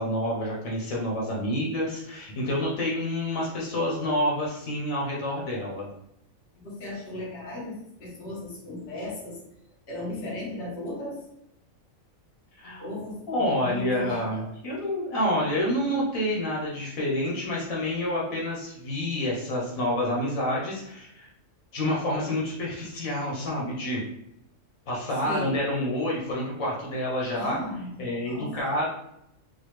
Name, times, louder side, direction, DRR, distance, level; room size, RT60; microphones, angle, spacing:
voice 1, 0.0-5.9 12.6-12.9 13.3-21.3 21.7-24.0 24.9-27.6 28.0-28.9, left 1 dB, 85° left, -4 dB, 1.5 m, -28 dB
voice 2, 6.5-9.4 9.9-11.2 12.8-14.4 25.2-25.6 27.3-28.0 28.2-28.7, left 1 dB, 55° left, -5 dB, 1.4 m, -36 dB
4.1 x 2.3 x 3.1 m, 0.78 s
omnidirectional pair, 1.4 m